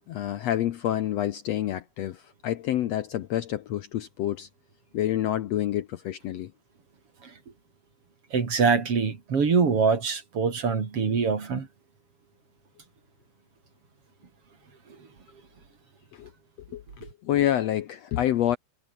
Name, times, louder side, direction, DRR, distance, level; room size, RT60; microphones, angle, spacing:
voice 1, 0.1-4.5 4.9-6.5 16.1-16.3 16.7-18.6, left 12 dB, 65° left, 1.8 m, -28 dB
voice 2, 8.3-11.7, right 5 dB, 45° right, 3.9 m, -24 dB
omnidirectional pair, 3.7 m